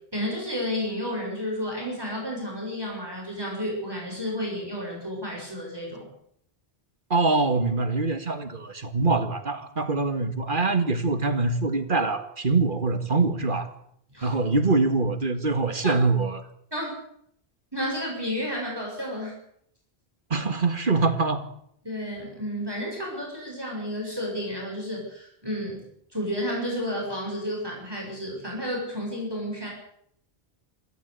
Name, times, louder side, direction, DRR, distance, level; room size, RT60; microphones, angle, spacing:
voice 1, 0.1-6.0 14.1-14.4 15.8-15.9 16.7-16.9 17.7-19.3 21.8-25.8 26.1-29.7, equal, 20° right, -2 dB, 7.5 m, -31 dB
voice 2, 7.1-13.7 14.2-16.4 20.3-21.4, right 3 dB, 55° right, 10 dB, 2.2 m, -24 dB
26.0 x 14.0 x 8.4 m, 0.71 s
omnidirectional pair, 1.1 m